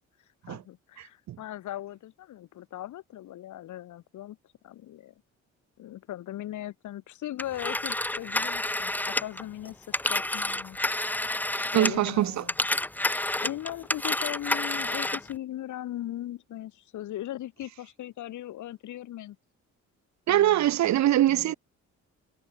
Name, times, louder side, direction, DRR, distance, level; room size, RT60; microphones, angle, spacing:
voice 1, 0.5-4.4 4.6-5.1 5.8-10.8 11.7-12.5 13.4-19.4 20.3-20.8 21.3-21.6, left 13 dB, 75° left, 2.0 m, -39 dB
voice 2, 1.0-1.4 11.7-12.4 20.3-21.5, right 13 dB, 65° right, 0.8 m, -23 dB
Telephone, 7.4-12.1 12.4-15.3, left 1 dB, 5° left, 0.6 m, -29 dB
cardioid pair, 90°, 30 cm